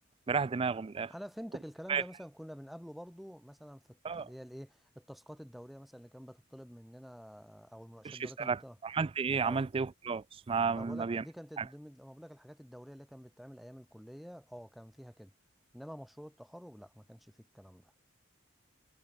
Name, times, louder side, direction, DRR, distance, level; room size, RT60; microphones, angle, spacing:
voice 1, 0.3-1.1 1.9-2.0 4.0-4.3 8.0-11.2 11.6-11.7, right 5 dB, 25° right, 0.3 m, -32 dB
voice 2, 1.1-8.8 9.4-9.7 10.7-15.3 15.7-17.9, equal, ahead, 3.2 m, -48 dB
head